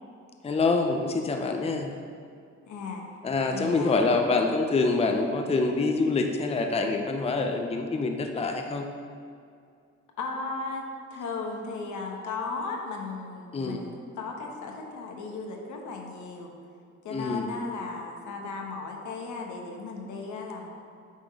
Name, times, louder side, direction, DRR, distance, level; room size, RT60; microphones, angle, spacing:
voice 1, 0.4-1.9 3.2-8.9 13.5-13.8 17.1-17.5, left 3 dB, 20° left, 4 dB, 0.6 m, -26 dB
voice 2, 2.6-3.0 3.5-4.2 10.2-10.9 11.1-16.5 17.0-20.7, left 4 dB, 75° left, 1 dB, 1.2 m, -36 dB
8.8 x 3.7 x 4.8 m, 2.3 s
cardioid pair, 90°, 30 cm